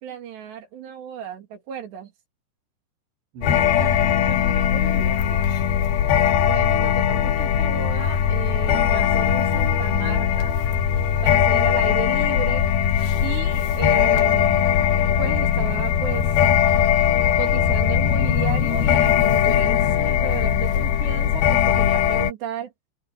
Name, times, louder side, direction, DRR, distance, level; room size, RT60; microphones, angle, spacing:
voice 1, 0.0-2.1 6.4-10.5 11.2-12.7 13.2-14.8 15.2-16.3 17.4-22.7, right 8 dB, 75° right, 4.8 m, -33 dB
voice 2, 3.3-5.4, right 6 dB, 90° right, 6.8 m, -38 dB
sound 1, 3.4-22.3, left 9 dB, 65° left, 3.1 m, -20 dB
omnidirectional pair, 5.0 m